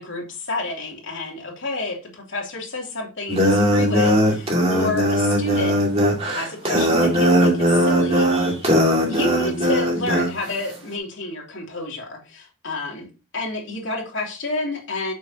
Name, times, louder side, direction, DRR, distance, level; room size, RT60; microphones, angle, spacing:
voice 1, 0.0-5.8 6.3-8.3 9.0-13.1 13.3-15.1, left 2 dB, 60° left, -1 dB, 3.1 m, -29 dB
sound 1, 3.3-10.3, equal, 30° right, 2.3 m, -19 dB
8.7 x 6.6 x 2.9 m, 0.31 s
head